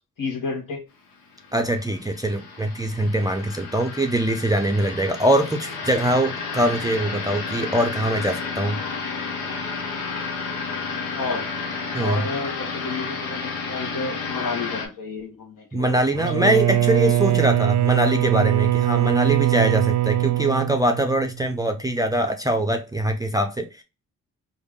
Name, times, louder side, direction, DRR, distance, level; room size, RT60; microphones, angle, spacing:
voice 1, 0.2-0.8 11.1-11.5 12.0-16.0 16.3-16.6 17.0-17.1, left 4 dB, 65° left, 1.4 m, -31 dB
sound 1, 1.3-14.9, left 4 dB, 90° left, 0.9 m, -31 dB
voice 2, 1.5-8.8 11.9-12.2 15.7-23.8, right 1 dB, 10° right, 0.5 m, -23 dB
Bowed string instrument, 16.1-21.5, right 14 dB, 55° right, 0.6 m, -21 dB
3.5 x 2.1 x 3.6 m
supercardioid pair, 60°, 35 cm